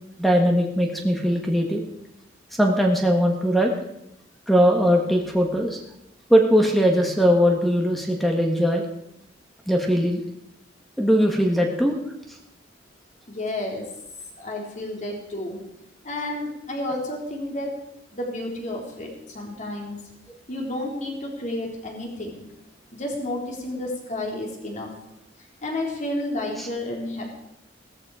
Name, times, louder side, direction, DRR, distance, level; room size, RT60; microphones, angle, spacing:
voice 1, 0.2-1.8 2.6-3.7 4.5-5.8 6.3-8.8 9.7-10.2 11.0-11.9 26.6-26.7, equal, ahead, 2 dB, 1.6 m, -20 dB
voice 2, 13.3-13.8 14.4-15.6 16.0-17.7 18.1-20.0 20.5-22.4 22.9-24.9 25.6-27.3, left 1 dB, 40° left, 0 dB, 4.0 m, -31 dB
17.0 x 14.0 x 5.0 m, 0.82 s
head